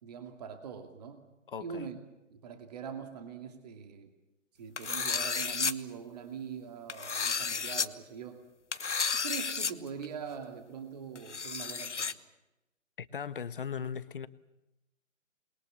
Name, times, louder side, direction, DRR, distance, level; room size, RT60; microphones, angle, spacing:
voice 1, 0.0-1.3 1.6-2.0 2.3-4.1 4.6-8.5 9.1-12.2, right 7 dB, 30° right, 7 dB, 2.5 m, -42 dB
voice 2, 1.5-1.8 13.0-14.3, left 7 dB, 40° left, 15 dB, 1.3 m, -38 dB
sound 1, 4.8-5.7 6.9-7.9 8.7-9.7 10.0-10.1 11.2-12.1, left 5 dB, 65° left, 1.3 m, -32 dB
28.0 x 22.0 x 7.1 m, 0.94 s
figure-of-eight pair, 145°, 39 cm